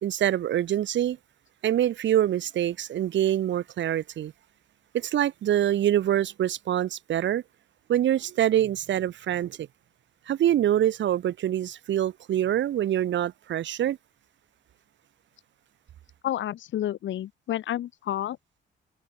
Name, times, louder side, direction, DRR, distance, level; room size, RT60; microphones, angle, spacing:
voice 1, 0.0-1.2 1.6-4.3 4.9-7.4 7.9-9.7 10.3-14.0, right 11 dB, 70° right, 2.0 m, -25 dB
voice 2, 16.2-18.4, left 12 dB, 70° left, 2.2 m, -30 dB
cardioid pair, 90°, 20 cm